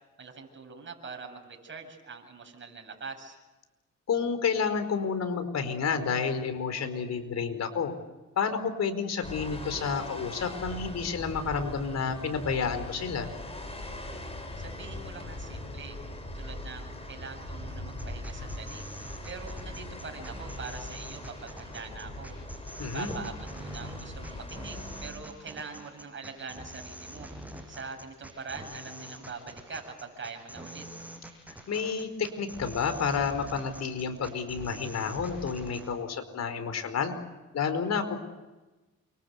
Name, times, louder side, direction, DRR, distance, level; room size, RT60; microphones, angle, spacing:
voice 1, 0.2-3.3 14.6-16.0 16.3-18.8 19.2-22.3 22.6-27.3 27.7-30.9, right 4 dB, 40° right, 3 dB, 7.9 m, -43 dB
voice 2, 4.1-7.9 8.4-13.3 22.8-23.1 31.7-37.1 37.5-38.2, left 6 dB, 60° left, 9 dB, 4.8 m, -30 dB
sound 1, 9.2-25.1, left 1 dB, 20° left, 7.9 m, -41 dB
sound 2, 17.9-35.9, right 1 dB, 5° right, 7.8 m, -45 dB
29.0 x 25.0 x 8.3 m, 1.1 s
cardioid pair, 90°, 30 cm